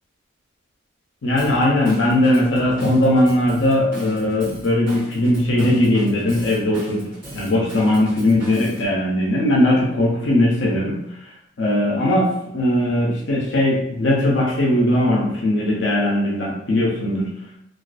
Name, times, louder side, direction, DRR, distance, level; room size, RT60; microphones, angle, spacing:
voice 1, 1.2-7.0 7.3-11.0 11.6-17.3, left 1 dB, 65° left, -3 dB, 0.5 m, -19 dB
Drum kit / Drum, 1.4-8.9, right 1 dB, 10° right, 1.3 m, -37 dB
2.3 x 2.3 x 2.4 m, 0.77 s
head